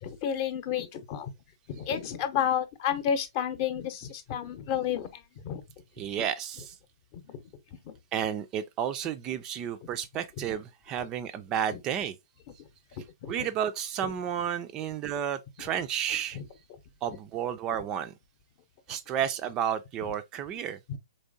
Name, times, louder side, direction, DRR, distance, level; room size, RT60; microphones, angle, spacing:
voice 1, 0.0-1.3 1.7-5.6 7.3-7.4 7.9-8.0 11.7-11.8 13.2-13.3 14.0-14.1 16.3-16.4 20.9-21.0, left 8 dB, 35° left, 0.7 m, -31 dB
voice 2, 6.0-6.8 8.1-12.2 13.3-16.4 17.0-18.1 18.9-20.8, right 9 dB, 25° right, 0.3 m, -32 dB
4.3 x 3.1 x 2.5 m
figure-of-eight pair, 125°, 2 cm